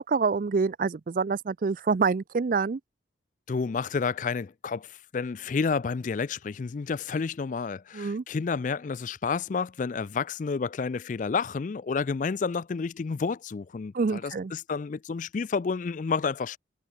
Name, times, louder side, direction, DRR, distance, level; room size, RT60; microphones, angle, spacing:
voice 1, 0.0-2.8 7.9-8.2 13.9-14.5, right 4 dB, 45° right, 0.4 m, -26 dB
voice 2, 3.5-16.6, left 5 dB, 40° left, 0.4 m, -30 dB
head